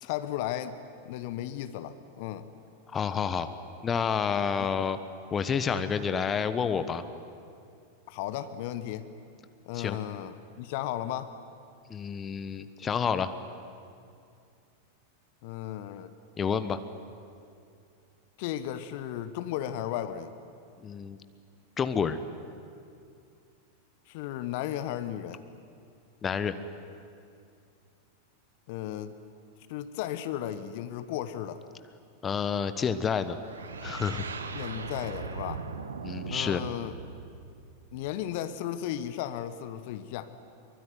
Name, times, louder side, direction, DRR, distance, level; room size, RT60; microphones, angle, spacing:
voice 1, 0.0-0.8 1.0-2.5 4.6-4.9 8.1-9.1 9.7-11.4 15.4-16.1 18.4-20.3 24.1-25.4 28.7-29.2 29.7-31.6 34.5-35.6 36.3-37.0 37.9-40.3, left 11 dB, 50° left, 12 dB, 1.1 m, -35 dB
voice 2, 2.9-3.5 3.8-5.0 5.3-7.0 9.7-10.0 11.9-13.3 16.4-16.8 20.8-21.2 21.8-22.2 26.2-26.6 32.2-33.4 33.8-34.2 36.0-36.6, left 6 dB, 20° left, 11 dB, 1.2 m, -29 dB
sound 1, 33.4-38.3, right 5 dB, 70° right, 1.5 m, -39 dB
24.5 x 23.5 x 9.5 m, 2.4 s
figure-of-eight pair, 90°, 0 cm